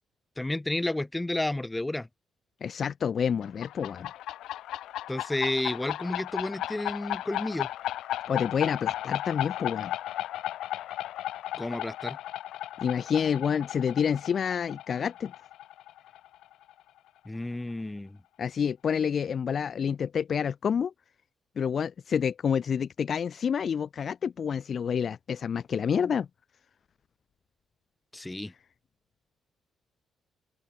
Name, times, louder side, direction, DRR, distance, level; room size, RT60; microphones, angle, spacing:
voice 1, 0.4-2.1 5.1-7.7 11.6-12.2 17.3-18.2 28.1-28.5, left 2 dB, 10° left, 2.7 m, -31 dB
voice 2, 2.6-4.1 8.3-9.9 12.8-15.3 18.4-20.9 21.6-26.3, left 7 dB, 50° left, 0.6 m, -28 dB
sound 1, 3.4-16.8, left 13 dB, 85° left, 5.3 m, -35 dB
cardioid pair, 90°, 0 cm